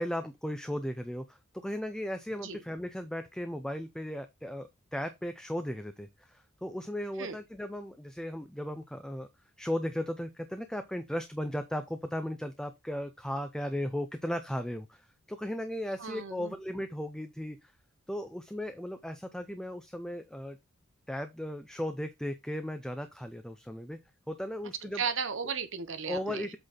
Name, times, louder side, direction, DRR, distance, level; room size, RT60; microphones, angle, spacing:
voice 1, 0.0-9.3 9.6-17.7 18.1-20.6 21.1-24.0 24.3-25.0 26.1-26.6, equal, 5° left, 0.4 m, -36 dB
voice 2, 16.0-16.5 24.8-26.5, right 6 dB, 60° right, 1.0 m, -35 dB
7.9 x 4.0 x 4.2 m
head